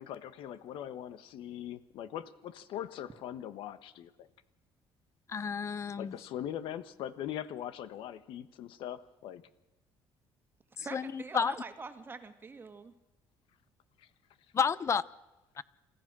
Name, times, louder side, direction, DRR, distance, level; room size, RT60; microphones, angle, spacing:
voice 1, 0.0-4.3 6.0-9.4 14.0-14.1, left 11 dB, 75° left, 14 dB, 1.3 m, -41 dB
voice 2, 5.3-6.1 10.8-11.5 14.5-15.0 15.6-15.7, left 6 dB, 35° left, 19 dB, 0.8 m, -31 dB
voice 3, 10.8-12.9, right 4 dB, 25° right, 8 dB, 1.8 m, -44 dB
29.0 x 14.5 x 6.2 m, 1.0 s
cardioid pair, 120°, 9 cm